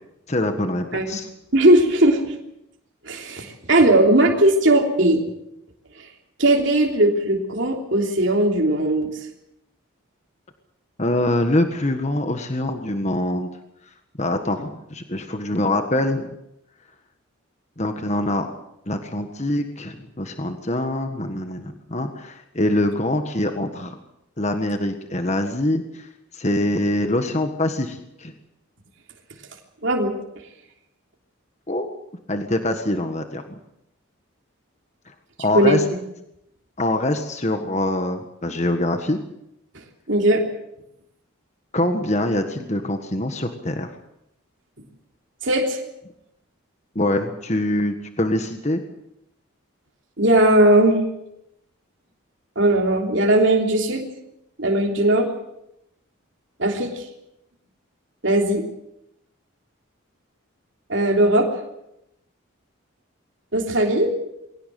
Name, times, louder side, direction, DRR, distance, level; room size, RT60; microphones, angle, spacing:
voice 1, 0.3-1.3 11.0-13.5 14.2-16.3 17.8-18.5 18.9-24.0 24.4-26.1 26.3-28.3 31.7-31.9 32.3-33.6 35.1-35.2 35.4-35.8 36.8-39.2 41.7-43.9 46.9-48.8, left 1 dB, 30° left, 6 dB, 1.6 m, -24 dB
voice 2, 1.5-2.3 3.0-5.2 6.0-6.1 6.4-9.1 29.8-30.1 35.5-35.8 40.1-40.4 45.4-45.8 50.2-51.0 52.5-54.1 54.6-55.3 56.6-57.1 58.2-58.7 60.9-61.5 63.5-64.1, right 1 dB, 60° right, 1 dB, 3.3 m, -18 dB
22.0 x 17.5 x 7.7 m, 0.82 s
head